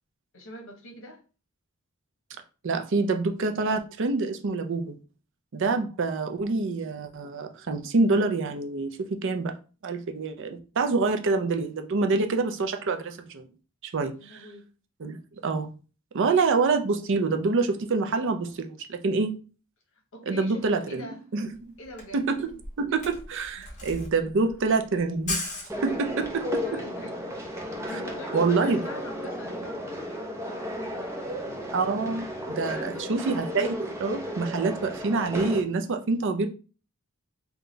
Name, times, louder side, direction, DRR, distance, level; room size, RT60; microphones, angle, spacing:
voice 1, 0.3-1.2 14.1-14.7 20.1-21.2 21.8-22.3 23.6-23.9 26.4-33.3, equal, 65° left, 1.1 m, -44 dB
voice 2, 2.6-5.0 5.5-9.6 9.8-13.5 13.8-14.4 15.0-15.2 15.4-15.7 16.1-19.3 20.3-21.1 21.3-21.7 22.1-22.5 22.8-25.5 25.8-26.8 28.3-28.8 31.7-32.3 32.5-36.5, right 3 dB, 60° right, 0.5 m, -26 dB
Camera, 21.5-21.6 21.8-26.3, left 2 dB, 35° left, 1.3 m, -37 dB
sound 1, 25.7-35.6, equal, 15° right, 0.7 m, -34 dB
3.8 x 2.3 x 3.8 m
head